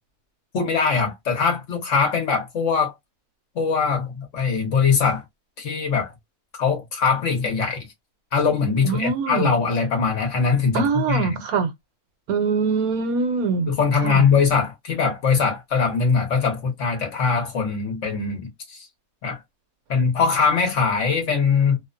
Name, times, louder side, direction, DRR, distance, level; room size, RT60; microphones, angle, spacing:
voice 1, 0.5-2.9 3.5-5.2 5.6-6.1 6.5-7.9 8.3-11.4 13.7-18.9 19.2-19.4 19.9-21.8, left 5 dB, 55° left, 1.1 m, -22 dB
voice 2, 8.8-9.5 10.7-11.7 12.3-13.7 14.0-14.3, right 5 dB, 70° right, 1.1 m, -23 dB
2.8 x 2.0 x 2.4 m
omnidirectional pair, 1.6 m